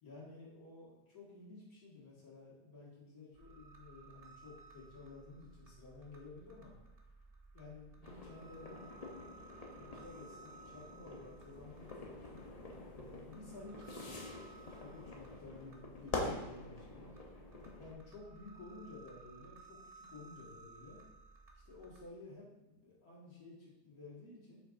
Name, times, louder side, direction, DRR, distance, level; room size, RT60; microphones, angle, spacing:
voice 1, 0.0-6.8 7.5-8.9 9.7-12.3 12.9-14.3 14.6-17.1 17.7-21.0 21.5-24.6, left 3 dB, 60° left, -6 dB, 2.2 m, -53 dB
sound 1, 3.3-22.0, right 3 dB, 55° right, 0.4 m, -58 dB
sound 2, 8.0-17.9, left 2 dB, 80° left, 0.3 m, -46 dB
6.7 x 5.7 x 2.5 m, 1.0 s
omnidirectional pair, 1.8 m